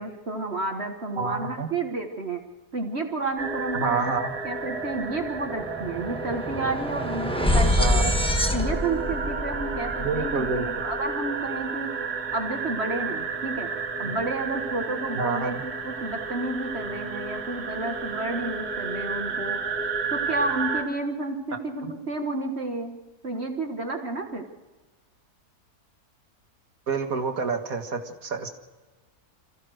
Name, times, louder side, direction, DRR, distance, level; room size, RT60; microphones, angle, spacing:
voice 1, 0.0-2.4 2.7-4.1 4.4-8.1 8.5-11.9 12.3-13.7 14.0-19.6 20.1-23.0 23.2-24.4, right 2 dB, 45° right, 4 dB, 1.7 m, -31 dB
voice 2, 1.2-1.7 3.7-4.3 7.8-8.1 10.0-10.7 14.0-14.1 15.1-15.6 21.8-21.9 26.9-28.5, right 5 dB, 60° right, 5 dB, 2.3 m, -28 dB
sound 1, 3.4-20.8, right 4 dB, 80° right, 2.6 m, -32 dB
sound 2, 4.4-4.5 4.7-11.0, left 1 dB, 5° left, 1.2 m, -27 dB
27.0 x 15.0 x 6.5 m, 1.2 s
omnidirectional pair, 1.7 m